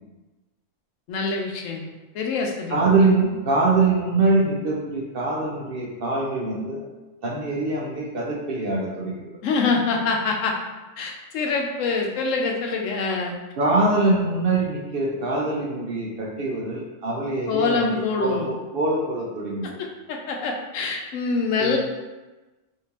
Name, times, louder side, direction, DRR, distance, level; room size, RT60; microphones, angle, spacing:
voice 1, 1.1-1.9 2.1-2.8 9.4-10.6 11.0-13.3 17.5-18.5 19.6-21.8, left 4 dB, 80° left, 1 dB, 1.0 m, -25 dB
voice 2, 2.7-6.9 7.2-9.3 13.6-19.8 21.6-21.8, right 3 dB, 60° right, -3 dB, 0.7 m, -23 dB
3.4 x 2.7 x 2.9 m, 1.1 s
omnidirectional pair, 1.3 m